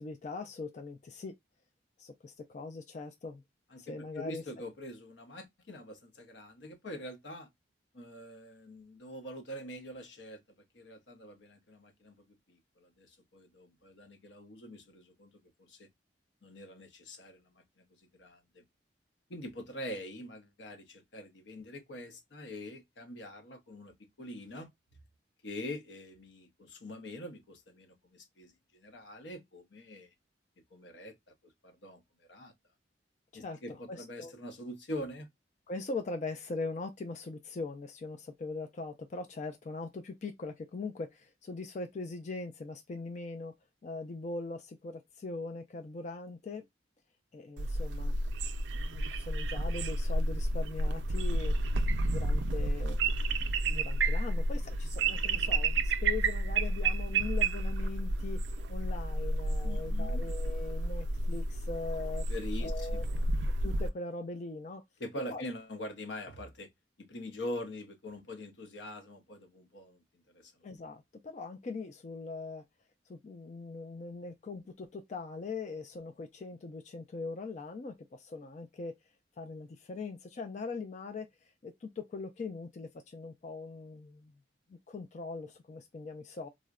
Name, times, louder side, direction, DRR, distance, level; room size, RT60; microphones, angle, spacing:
voice 1, 0.0-1.3 2.0-3.4 3.8-4.4 33.3-34.3 35.7-43.5 43.8-46.6 47.3-48.2 48.7-51.6 52.0-53.0 53.4-58.4 58.7-62.2 62.6-63.0 63.6-64.8 65.3-65.4 70.6-72.6 73.1-78.9 79.4-84.3 84.7-86.5, left 3 dB, 40° left, 0.4 m, -41 dB
voice 2, 3.7-7.5 7.9-10.4 10.7-15.9 16.4-18.6 19.3-24.7 25.4-30.1 30.7-32.0 32.3-32.5 33.3-35.3 59.6-60.2 62.3-63.3 65.0-66.7 67.0-70.0 70.3-70.5, left 1 dB, 75° left, 0.7 m, -44 dB
sound 1, 47.6-63.9, right 2 dB, 80° right, 0.4 m, -31 dB
3.7 x 2.0 x 2.3 m
head